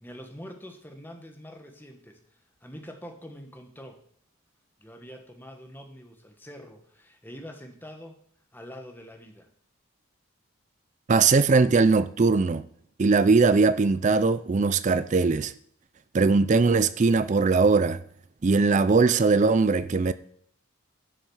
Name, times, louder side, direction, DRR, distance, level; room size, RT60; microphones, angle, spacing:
voice 1, 0.0-2.2 2.6-4.0 4.8-8.2 8.5-9.5, equal, 10° left, 1.3 m, -44 dB
voice 2, 11.1-12.6 13.0-15.5 16.1-18.0 18.4-20.1, right 4 dB, 35° right, 0.4 m, -20 dB
11.5 x 6.3 x 6.3 m
head